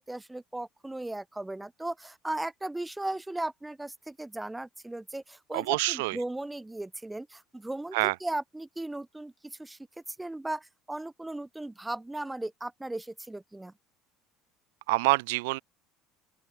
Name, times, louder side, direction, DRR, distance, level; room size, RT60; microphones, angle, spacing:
voice 1, 0.0-9.8 10.1-13.7, right 2 dB, 10° right, 0.6 m, -37 dB
voice 2, 5.5-6.2 7.9-8.1 14.9-15.6, right 24 dB, 70° right, 0.3 m, -26 dB
open air
figure-of-eight pair, 65°, 0 cm